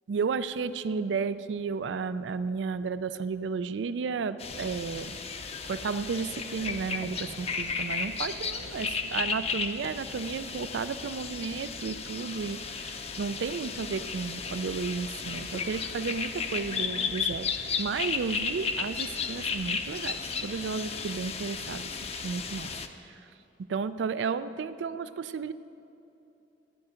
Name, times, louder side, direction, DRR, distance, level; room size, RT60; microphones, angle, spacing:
voice 1, 0.1-5.2 5.6-22.7 23.0-23.3 23.7-25.5, right 5 dB, 85° right, 14 dB, 0.4 m, -33 dB
sound 1, 4.4-22.9, left 5 dB, 35° left, 0.6 m, -34 dB
14.0 x 10.5 x 5.1 m, 2.9 s
head